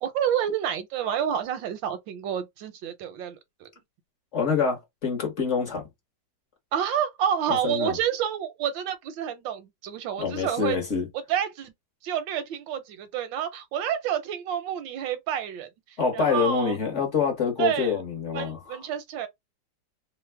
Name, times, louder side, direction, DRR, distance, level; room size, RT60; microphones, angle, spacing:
voice 1, 0.0-3.7 6.7-10.8 11.1-11.7 12.0-16.7 17.6-18.0 18.3-19.3, right 9 dB, 80° right, 1.4 m, -29 dB
voice 2, 4.3-5.8 7.5-8.0 10.2-11.1 16.0-18.8, left 6 dB, 50° left, 1.1 m, -26 dB
3.3 x 2.1 x 3.2 m
omnidirectional pair, 2.0 m